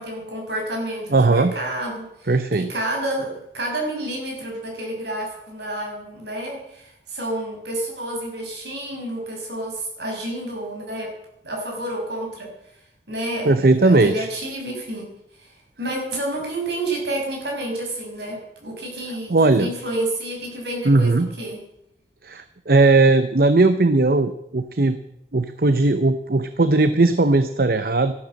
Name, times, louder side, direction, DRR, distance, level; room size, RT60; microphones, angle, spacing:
voice 1, 0.0-11.2 11.4-12.5 13.1-15.1 15.4-21.6, right 1 dB, 70° right, 1 dB, 6.2 m, -30 dB
voice 2, 1.1-1.5 2.3-2.7 13.4-14.3 19.3-19.7 20.8-21.3 22.2-25.0 25.3-28.1, right 3 dB, 55° right, 11 dB, 0.8 m, -18 dB
14.0 x 11.5 x 7.7 m, 0.77 s
head